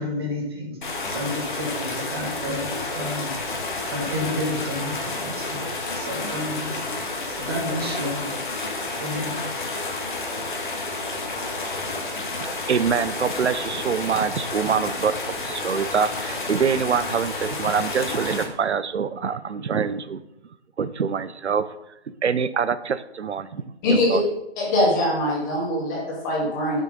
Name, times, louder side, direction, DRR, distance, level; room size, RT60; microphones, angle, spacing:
voice 1, 0.0-3.6 3.8-5.7 5.9-8.3 9.0-9.4, left 1 dB, 20° right, 0 dB, 1.3 m, -31 dB
sound 1, 0.8-18.4, left 3 dB, 45° left, 1.7 m, -30 dB
voice 2, 12.4-20.2 20.8-21.7 22.2-23.6 23.9-24.2, right 6 dB, 80° right, 15 dB, 0.7 m, -25 dB
voice 3, 23.8-24.2 24.6-26.8, left 1 dB, 15° left, -5 dB, 2.2 m, -22 dB
6.7 x 6.1 x 5.2 m, 0.89 s
hypercardioid pair, 160°, 34 cm